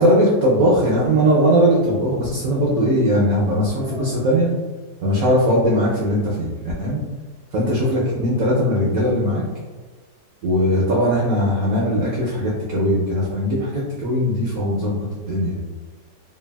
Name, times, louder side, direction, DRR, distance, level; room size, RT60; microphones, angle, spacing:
voice 1, 0.0-4.5 5.0-6.5 6.8-7.0 7.5-9.4 10.4-15.6, equal, 70° right, -5 dB, 0.8 m, -19 dB
3.3 x 2.3 x 2.2 m, 1.3 s
omnidirectional pair, 2.0 m